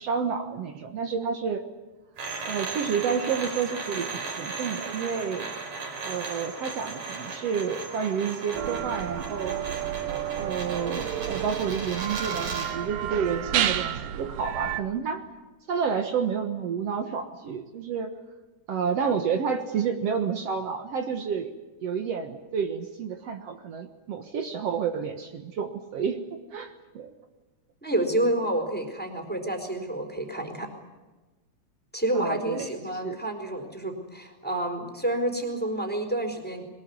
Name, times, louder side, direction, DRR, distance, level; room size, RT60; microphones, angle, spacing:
voice 1, 0.0-1.7 2.4-5.5 6.0-9.6 10.4-15.2 15.7-18.1 18.7-21.5 21.8-26.2 26.5-27.1 32.1-32.7 33.0-33.2, right 6 dB, 85° right, 6 dB, 1.3 m, -30 dB
sound 1, 2.2-12.8, right 4 dB, 50° right, 5.7 m, -36 dB
sound 2, 8.5-14.8, right 10 dB, 65° right, 2.4 m, -31 dB
voice 2, 27.8-30.7 31.9-36.6, right 1 dB, ahead, 6 dB, 3.7 m, -29 dB
22.5 x 21.0 x 9.6 m, 1.2 s
omnidirectional pair, 5.0 m